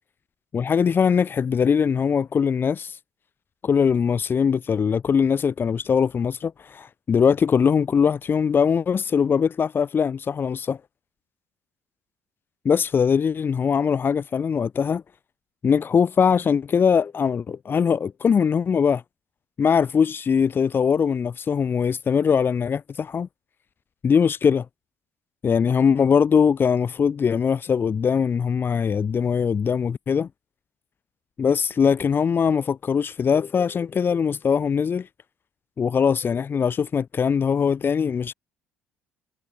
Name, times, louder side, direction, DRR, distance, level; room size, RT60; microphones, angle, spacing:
voice 1, 0.5-3.0 3.6-10.8 12.7-15.0 15.6-19.0 19.6-23.3 24.0-24.7 25.4-30.3 31.4-35.1 35.8-38.3, left 6 dB, 35° left, 3.4 m, -21 dB
figure-of-eight pair, 50°, 6 cm